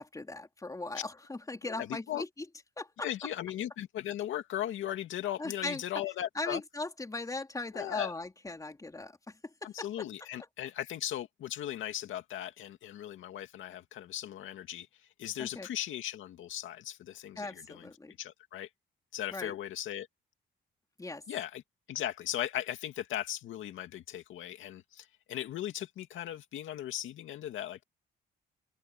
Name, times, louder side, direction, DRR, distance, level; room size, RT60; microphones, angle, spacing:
voice 1, 0.0-2.5 2.8-3.1 5.4-5.8 6.4-9.9 15.4-15.7 17.4-18.1 19.3-19.6 21.0-21.2, left 2 dB, 15° left, 3.6 m, -39 dB
voice 2, 1.6-2.2 3.0-6.6 7.7-8.1 9.6-14.9 15.2-18.7 19.1-20.1 21.3-21.6 21.9-27.8, left 12 dB, 80° left, 2.3 m, -38 dB
open air
cardioid pair, 90°, 20 cm